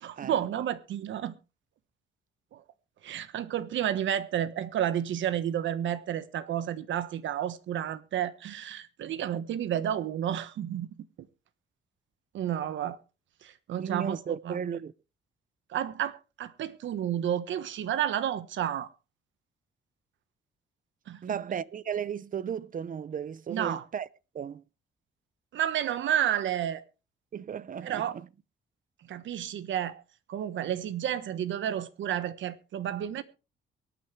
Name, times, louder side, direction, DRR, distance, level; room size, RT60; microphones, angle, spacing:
voice 1, 0.0-1.3 2.5-2.6 3.0-10.9 12.3-13.0 13.4-14.2 14.4-14.8 15.7-18.9 21.1-21.4 23.5-23.8 25.5-26.8 27.8-28.1 29.1-30.0 30.3-33.2, right 10 dB, 70° right, 1.3 m, -31 dB
voice 2, 13.8-14.9 21.2-24.1 24.3-24.6 27.3-28.3, right 8 dB, 45° right, 0.7 m, -35 dB
23.0 x 9.3 x 3.3 m
cardioid pair, 90°, 20 cm